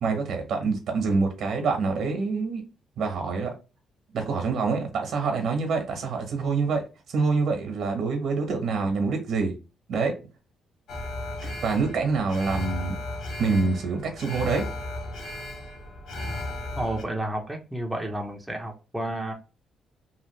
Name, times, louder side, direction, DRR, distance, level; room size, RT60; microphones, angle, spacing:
voice 1, 0.0-2.6 3.0-3.5 4.1-6.8 7.1-9.5 9.9-10.1 11.4-12.9 13.4-14.7, right 4 dB, 70° right, 1.0 m, -26 dB
Alarm, 10.9-17.0, left 1 dB, 75° left, 0.9 m, -35 dB
voice 2, 16.8-19.3, right 1 dB, 5° right, 0.7 m, -31 dB
2.9 x 2.5 x 3.1 m
cardioid pair, 90°, 0 cm